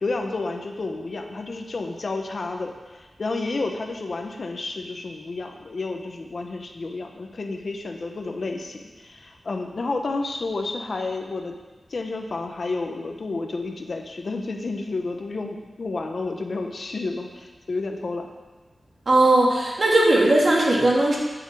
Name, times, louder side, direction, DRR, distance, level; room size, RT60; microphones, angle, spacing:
voice 1, 0.0-11.5 11.9-18.3, left 3 dB, 50° left, 4 dB, 1.1 m, -30 dB
voice 2, 19.1-21.2, right 2 dB, 45° right, -3 dB, 2.7 m, -18 dB
8.8 x 8.1 x 7.7 m, 1.3 s
wide cardioid pair, 125°, 0 cm